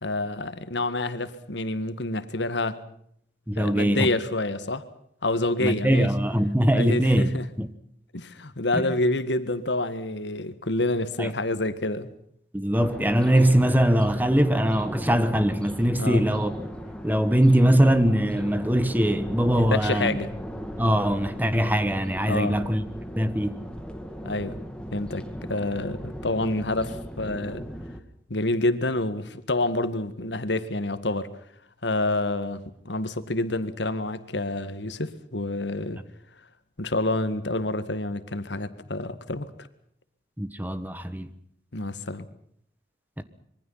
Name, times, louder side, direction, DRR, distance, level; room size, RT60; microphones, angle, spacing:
voice 1, 0.0-2.8 3.6-4.8 5.2-6.1 6.7-7.5 8.1-12.1 16.0-16.2 19.7-20.3 22.2-22.6 24.2-24.6 24.9-27.6 28.3-31.3 31.8-36.0 36.8-39.7 41.7-42.3, left 2 dB, 80° left, 1.8 m, -28 dB
voice 2, 3.5-4.1 5.6-7.3 7.6-7.7 8.8-8.9 11.2-11.3 12.5-16.5 17.0-20.2 20.8-22.8 23.2-23.6 40.4-41.3 43.2-43.3, right 1 dB, 10° right, 1.4 m, -22 dB
sound 1, 12.7-28.0, equal, 5° left, 2.1 m, -37 dB
26.0 x 23.0 x 5.7 m
head